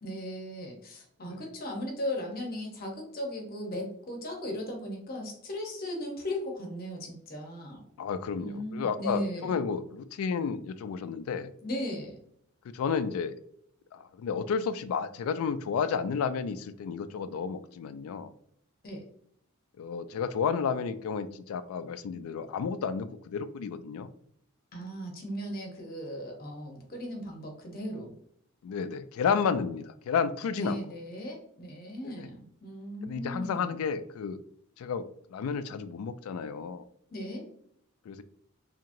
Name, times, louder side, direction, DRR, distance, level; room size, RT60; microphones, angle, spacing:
voice 1, 0.0-7.8 8.4-9.6 11.6-12.2 18.8-19.1 24.7-28.1 30.5-33.8 37.1-37.4, equal, 45° left, 1 dB, 0.8 m, -37 dB
voice 2, 8.0-11.5 12.6-13.4 13.9-18.3 19.8-24.1 28.6-30.8 32.0-32.3 33.0-34.4 34.8-36.8 38.1-38.2, left 6 dB, 80° left, 13 dB, 0.3 m, -32 dB
2.8 x 2.8 x 2.5 m, 0.69 s
head